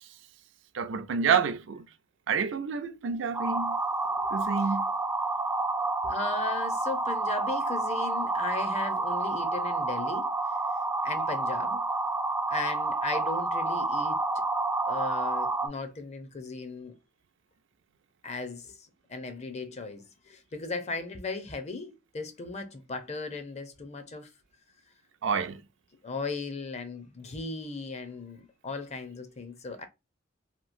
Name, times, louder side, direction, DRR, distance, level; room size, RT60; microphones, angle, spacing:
voice 1, 0.7-1.8 2.3-3.8 4.3-4.9 25.2-25.6, right 6 dB, 70° right, 0.4 m, -28 dB
sound 1, 3.3-15.7, right 2 dB, 10° right, 0.4 m, -29 dB
voice 2, 4.2-4.8 6.0-10.3 11.0-11.8 12.5-14.4 14.9-17.0 18.2-24.3 26.0-29.8, left 3 dB, 35° left, 0.6 m, -37 dB
3.0 x 2.4 x 2.5 m
head